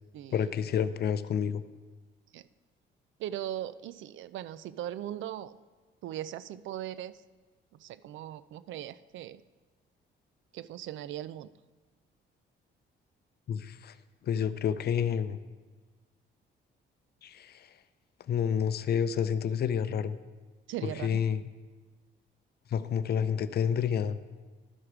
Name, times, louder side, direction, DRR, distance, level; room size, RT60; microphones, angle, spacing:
voice 1, 0.3-1.6 13.5-13.9 14.2-15.4 17.2-17.7 18.3-20.2 20.8-21.4 22.7-24.2, left 8 dB, 55° left, 13 dB, 0.5 m, -29 dB
voice 2, 3.2-5.6 6.0-7.1 7.8-9.4 10.5-11.5 20.7-21.3, right 12 dB, 75° right, 16 dB, 0.4 m, -39 dB
12.5 x 4.8 x 5.9 m, 1.3 s
cardioid pair, 90°, 20 cm